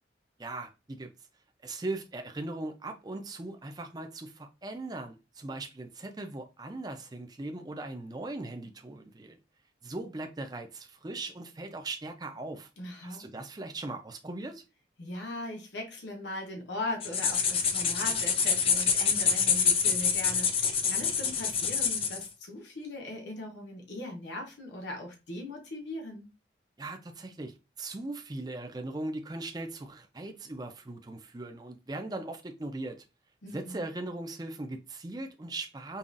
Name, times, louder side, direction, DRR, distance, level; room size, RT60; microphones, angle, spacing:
voice 1, 0.4-1.1 1.6-9.4 9.8-12.7 13.0-14.6 26.8-33.0 33.5-36.0, right 2 dB, 20° right, 0.5 m, -39 dB
voice 2, 12.8-13.2 15.0-26.3 33.4-33.9, left 1 dB, 75° left, 1.0 m, -39 dB
sound 1, 17.0-22.3, left 6 dB, 30° left, 0.5 m, -26 dB
5.5 x 2.4 x 2.5 m
head